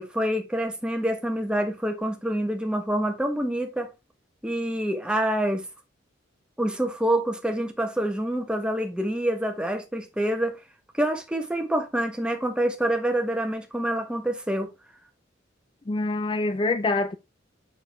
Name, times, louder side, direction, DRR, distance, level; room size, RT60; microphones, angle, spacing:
voice 1, 0.0-3.9 4.4-5.6 6.6-10.6 11.0-14.7, right 1 dB, 5° right, 1.4 m, -26 dB
voice 2, 15.9-17.2, left 2 dB, 25° left, 0.4 m, -25 dB
7.0 x 6.3 x 3.4 m
head